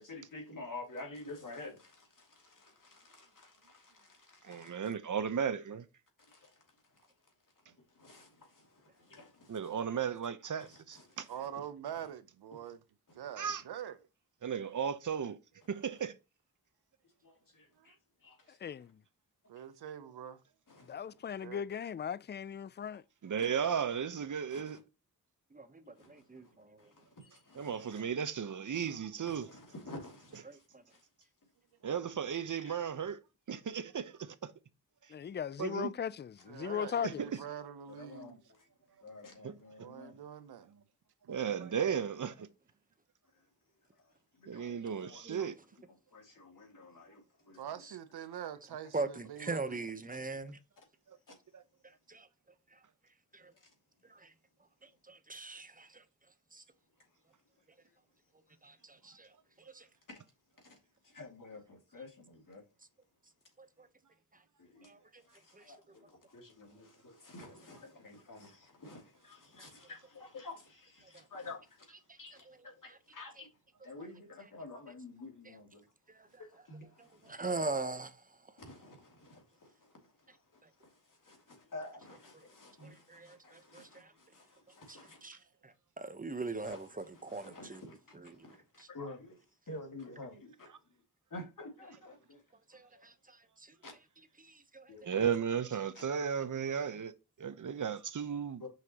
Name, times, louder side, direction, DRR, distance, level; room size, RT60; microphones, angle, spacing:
voice 1, 0.0-4.9 6.2-7.1 7.6-9.7 10.6-11.4 12.6-12.7 13.1-13.5 17.2-18.6 19.6-19.7 20.7-21.0 23.4-23.7 24.5-24.8 26.0-28.0 28.7-29.0 29.2-31.0 32.6-32.8 37.9-38.7 39.0-40.2 43.3-43.4 44.0-45.5 45.9-47.8 50.8-50.9 51.3-51.4 53.6-53.7 60.1-60.2 60.6-60.8 61.0-62.6 64.6-73.5 73.8-75.9 76.4-77.4 78.6-85.3 86.6-90.7 91.3-92.4 92.7-93.0 93.8-94.0 94.9-95.2 95.9-96.0 98.6-98.7, left 2 dB, 55° left, 2.7 m, -51 dB
voice 2, 4.4-5.8 9.5-11.3 13.4-13.6 14.4-15.4 15.7-16.1 23.2-24.8 27.5-29.5 31.8-33.2 33.5-34.5 35.6-35.9 37.0-37.3 39.4-39.5 41.3-42.5 44.5-45.5 51.1-51.2 51.5-51.6 95.0-97.1 97.4-98.6, right 7 dB, 50° right, 0.9 m, -35 dB
voice 3, 11.3-12.8 13.1-14.0 17.8-17.9 19.5-20.4 21.4-21.6 22.8-23.0 36.5-38.4 39.8-40.8 41.2-41.3 47.6-49.8, right 9 dB, 90° right, 0.8 m, -44 dB
voice 4, 18.6-19.0 20.9-23.0 35.1-37.3, left 8 dB, 30° left, 0.4 m, -38 dB
voice 5, 25.5-26.9 27.9-28.0 30.4-30.8 45.2-45.5 47.8-47.9 48.9-50.6 52.1-52.3 52.7-52.8 53.3-53.5 54.1-54.3 54.8-56.0 56.5-56.6 58.6-59.3 59.6-59.9 63.6-63.9 64.8-65.2 65.5-65.6 72.1-72.2 72.5-72.6 76.1-76.3 77.0-78.2 82.8-84.1 84.9-87.9 88.1-88.5 88.8-88.9 92.7-93.7 94.4-95.0, right 3 dB, 20° right, 1.0 m, -42 dB
5.8 x 5.8 x 3.0 m
cardioid pair, 45°, 38 cm